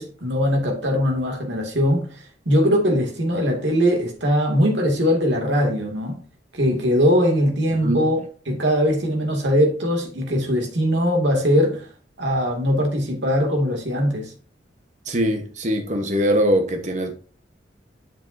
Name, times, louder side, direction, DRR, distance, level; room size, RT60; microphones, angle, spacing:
voice 1, 0.0-6.2 6.5-11.9 12.2-14.3, equal, 70° right, 2.4 m, -21 dB
voice 2, 15.1-17.1, equal, 40° right, 1.2 m, -22 dB
7.8 x 7.4 x 2.7 m
head